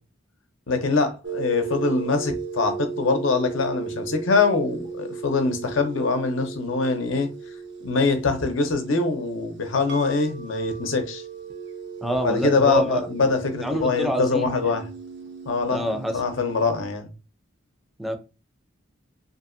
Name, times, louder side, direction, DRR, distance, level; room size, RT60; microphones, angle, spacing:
voice 1, 0.7-7.3 7.8-11.2 12.2-14.8 15.5-15.8 16.1-17.1, left 4 dB, 80° left, 0.7 m, -23 dB
sound 1, 1.2-16.8, right 5 dB, 65° right, 0.6 m, -36 dB
voice 2, 12.0-13.3 13.6-14.8 15.7-16.2 18.0-18.2, equal, ahead, 0.4 m, -27 dB
2.7 x 2.6 x 2.5 m
head